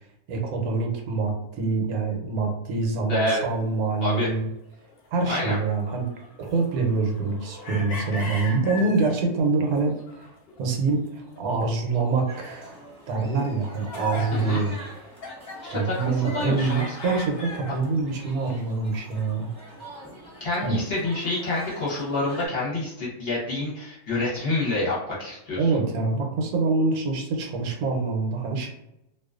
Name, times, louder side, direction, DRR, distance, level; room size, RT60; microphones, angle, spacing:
voice 1, 0.3-4.5 5.1-6.1 6.4-10.3 10.6-12.8 13.1-14.8 15.7-19.5 20.6-20.8 25.6-28.7, right 3 dB, 80° right, 2 dB, 1.0 m, -25 dB
voice 2, 3.1-3.4 4.0-4.3 5.3-5.6 14.3-14.6 15.6-16.9 20.4-25.6, left 2 dB, 50° left, -6 dB, 0.8 m, -27 dB
sound 1, 3.4-3.5 4.7-9.2 9.7-10.9 11.2-12.2 12.5-12.6 13.4-18.1 18.5-19.2 19.5-19.6 19.9-20.0 20.7-21.0, left 2 dB, 90° left, 0.5 m, -39 dB
sound 2, 12.3-22.5, right 1 dB, 5° left, 0.8 m, -45 dB
2.4 x 2.3 x 2.3 m, 0.86 s
omnidirectional pair, 1.6 m